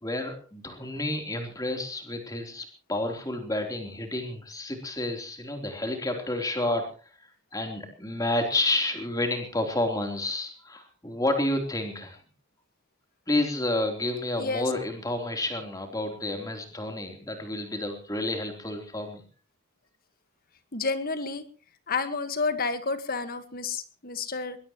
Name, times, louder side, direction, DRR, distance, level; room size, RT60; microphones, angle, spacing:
voice 1, 0.0-6.9 7.5-12.2 13.3-19.2, left 1 dB, 15° left, 4 dB, 3.7 m, -30 dB
voice 2, 20.7-21.4 21.9-24.6, left 4 dB, 40° left, 10 dB, 1.7 m, -30 dB
21.0 x 21.0 x 3.1 m, 0.37 s
head